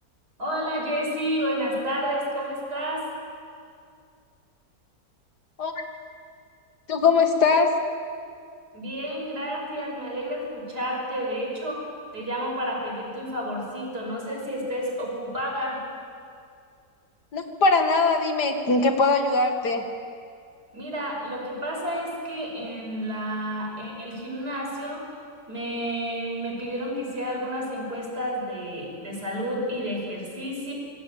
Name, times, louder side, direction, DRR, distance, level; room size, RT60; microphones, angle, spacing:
voice 1, 0.4-3.1 8.7-11.9 12.1-15.8 20.7-25.1 25.5-30.7, equal, 80° right, -1 dB, 6.3 m, -30 dB
voice 2, 6.9-7.7 17.3-19.8, left 3 dB, 80° left, 5 dB, 2.7 m, -21 dB
25.5 x 20.0 x 9.1 m, 2.3 s
omnidirectional pair, 1.7 m